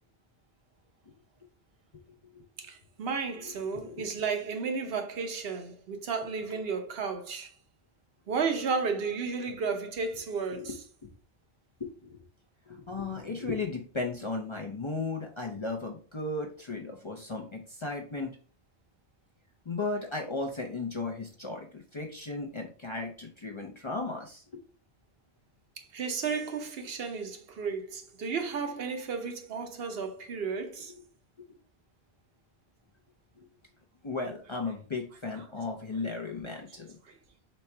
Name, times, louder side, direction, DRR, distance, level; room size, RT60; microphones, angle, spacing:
voice 1, 2.6-7.5 8.3-10.8 25.8-30.9 37.1-37.2, right 5 dB, 70° right, 0.9 m, -33 dB
voice 2, 12.7-18.3 19.7-24.4 33.4-33.5 34.0-37.0, left 3 dB, 40° left, 0.5 m, -35 dB
4.1 x 2.3 x 4.3 m
omnidirectional pair, 1.1 m